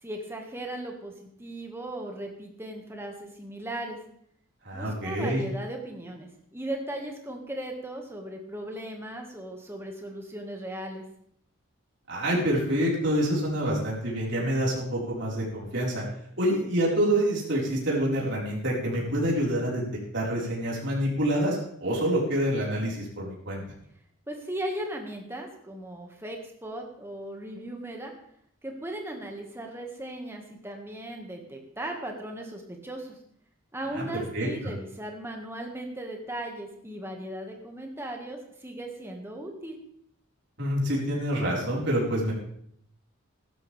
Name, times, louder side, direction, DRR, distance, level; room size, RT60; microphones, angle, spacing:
voice 1, 0.0-4.0 4.7-11.0 24.3-28.1 28.6-33.2 33.7-39.8, right 1 dB, 10° right, 2 dB, 1.9 m, -37 dB
voice 2, 4.6-5.4 12.1-16.0 16.4-19.8 20.1-23.6 33.9-34.0 34.3-34.5 40.6-42.3, right 1 dB, 55° right, -4 dB, 5.0 m, -27 dB
16.0 x 12.5 x 3.6 m, 0.67 s
head